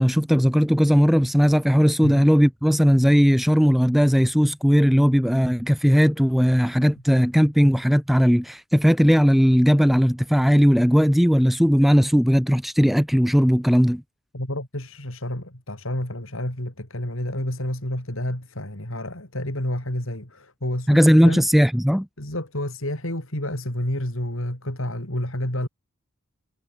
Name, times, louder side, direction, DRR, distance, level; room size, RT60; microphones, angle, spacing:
voice 1, 0.0-14.0 20.9-22.1, equal, ahead, 0.7 m, -18 dB
voice 2, 14.3-21.5 22.2-25.7, left 1 dB, 60° left, 5.1 m, -29 dB
head